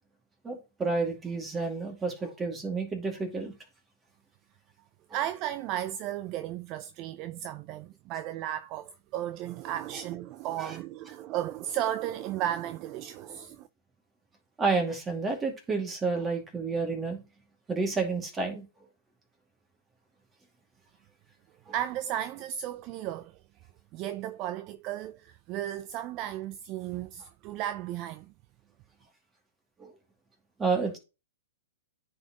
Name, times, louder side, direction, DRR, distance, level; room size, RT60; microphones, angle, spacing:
voice 1, 0.4-3.5 10.6-10.8 14.6-17.2 17.7-18.6 21.7-21.8 29.8-29.9 30.6-31.0, right 4 dB, 15° right, 2.3 m, -30 dB
voice 2, 5.1-13.7 21.7-23.4 23.9-28.3, right 12 dB, 35° right, 0.4 m, -34 dB
9.5 x 4.4 x 3.0 m
hypercardioid pair, 130°, 0 cm